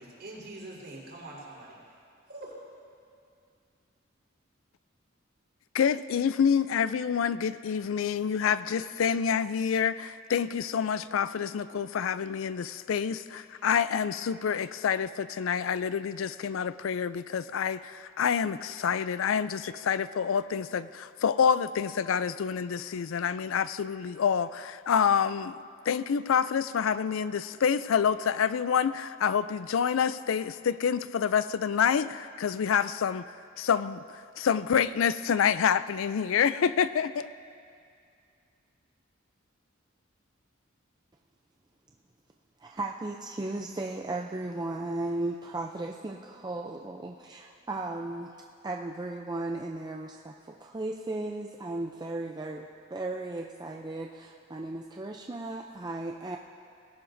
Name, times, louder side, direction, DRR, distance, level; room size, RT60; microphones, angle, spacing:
voice 1, 0.0-1.8 2.3-2.6, right 2 dB, 55° right, -4 dB, 4.3 m, -44 dB
voice 2, 5.7-25.6 25.9-33.2 33.6-37.3, left 7 dB, 75° left, 14 dB, 0.4 m, -27 dB
voice 3, 42.6-48.4 48.6-56.4, right 2 dB, 20° right, 1 dB, 0.5 m, -36 dB
20.5 x 17.0 x 2.6 m, 2.4 s
head